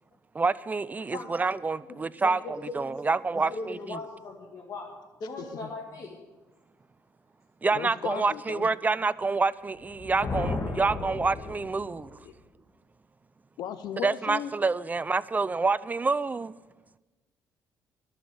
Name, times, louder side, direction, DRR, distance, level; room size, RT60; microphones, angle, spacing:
voice 1, 0.3-4.0 7.6-12.2 14.0-16.5, right 4 dB, 25° right, 0.5 m, -27 dB
voice 2, 1.1-1.4 1.9-4.9 5.2-6.1, left 2 dB, 50° left, 2.0 m, -39 dB
voice 3, 5.4-5.7 7.7-8.7 12.2-12.3 13.6-14.5, left 10 dB, 75° left, 0.6 m, -36 dB
Thunder, 9.8-12.1, left 3 dB, 35° left, 1.9 m, -34 dB
12.0 x 7.2 x 9.7 m
supercardioid pair, 80°, 7 cm